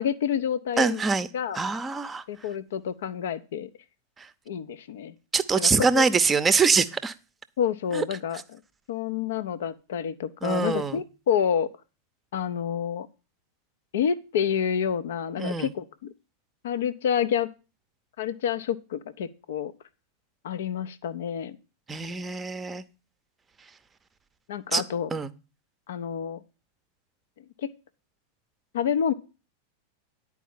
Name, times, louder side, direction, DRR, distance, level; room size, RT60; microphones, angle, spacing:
voice 1, 0.0-1.0 1.3-1.6 2.3-3.7 4.5-5.1 5.6-6.0 7.6-8.6 8.9-11.7 12.3-13.1 13.9-16.1 16.6-17.5 18.2-19.7 20.4-21.6 24.5-25.1 25.9-26.4 27.6-27.7 28.7-29.1, left 8 dB, 60° left, 15 dB, 0.6 m, -28 dB
voice 2, 0.8-1.3 1.5-2.2 4.2-4.3 5.3-7.1 7.9-8.0 10.4-11.0 15.4-15.7 21.9-22.8 24.7-24.8 25.1-25.3, right 4 dB, 15° right, 13 dB, 0.7 m, -24 dB
10.0 x 4.8 x 7.1 m, 0.32 s
figure-of-eight pair, 90°, 0 cm